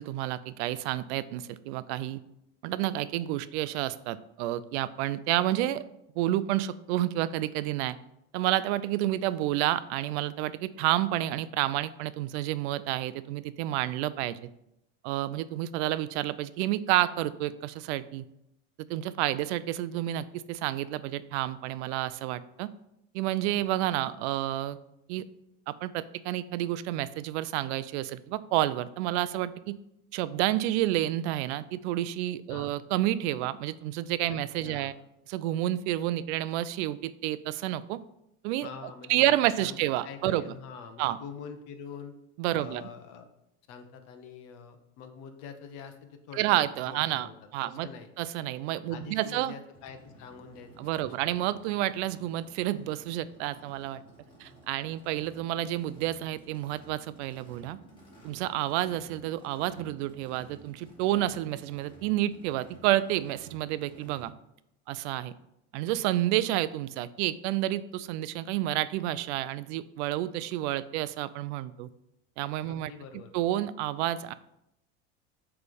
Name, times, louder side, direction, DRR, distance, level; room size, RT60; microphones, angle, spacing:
voice 1, 0.0-2.2 2.6-5.8 6.2-8.0 8.3-14.4 15.0-18.2 18.9-22.7 23.1-24.8 25.1-25.2 25.7-29.8 30.1-34.9 35.3-38.0 38.4-38.7 39.1-40.4 41.0-41.2 42.4-42.8 46.3-47.9 48.2-49.5 50.8-54.0 54.4-57.8 58.2-64.3 64.9-65.3 65.7-71.9 72.4-72.9 73.3-74.3, right 14 dB, 75° right, 15 dB, 0.5 m, -30 dB
voice 2, 34.6-35.0 38.6-39.3 39.6-39.8 40.0-42.1 42.5-43.3 43.7-46.6 46.9-47.3 47.6-48.1 48.9-51.2 72.6-73.3, left 6 dB, 60° left, 7 dB, 1.1 m, -45 dB
Race car auto racing / Idling / Accelerating revving vroom, 49.7-64.2, right 1 dB, 15° left, 2.2 m, -54 dB
8.3 x 3.4 x 5.2 m, 0.82 s
supercardioid pair, 140°, 34 cm